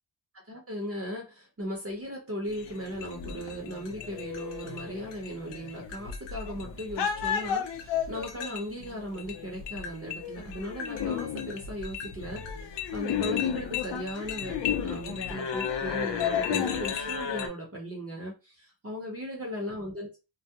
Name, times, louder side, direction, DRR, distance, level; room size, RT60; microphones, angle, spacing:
voice 1, 0.5-20.1, equal, 30° right, -1 dB, 0.8 m, -37 dB
sound 1, 2.5-17.5, left 8 dB, 65° left, 0.6 m, -33 dB
2.3 x 2.1 x 2.8 m, 0.28 s
wide cardioid pair, 120°, 47 cm